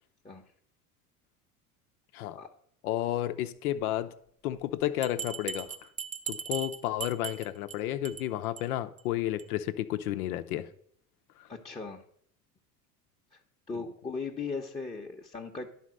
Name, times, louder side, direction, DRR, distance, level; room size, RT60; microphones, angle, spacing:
voice 1, 2.8-4.1 4.4-5.9 6.3-10.7 11.4-11.5 13.7-13.8, left 13 dB, 70° left, 0.8 m, -32 dB
Bell, 5.0-7.8 8.0-8.3 8.6-8.7 9.0-9.1 9.4-9.5, right 7 dB, 15° right, 0.6 m, -38 dB
voice 2, 11.5-12.0 13.3-13.4 13.7-15.7, left 4 dB, 15° left, 0.9 m, -38 dB
11.0 x 4.1 x 6.2 m
hypercardioid pair, 75°, 46 cm